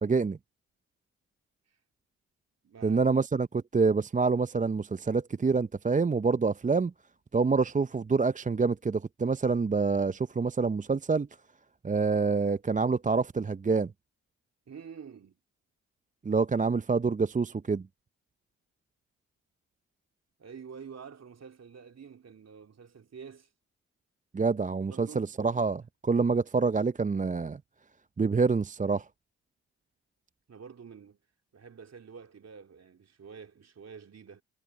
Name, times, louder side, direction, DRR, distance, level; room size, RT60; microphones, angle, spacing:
voice 1, 0.0-0.4 2.8-6.9 7.3-11.3 11.8-13.9 16.2-17.9 24.3-27.6 28.2-29.0, right 4 dB, 20° right, 0.8 m, -27 dB
voice 2, 2.6-3.1 14.7-15.4 20.4-23.5 24.9-25.3 30.5-31.2 31.5-34.4, right 6 dB, 45° right, 3.4 m, -48 dB
hypercardioid pair, 45°, 36 cm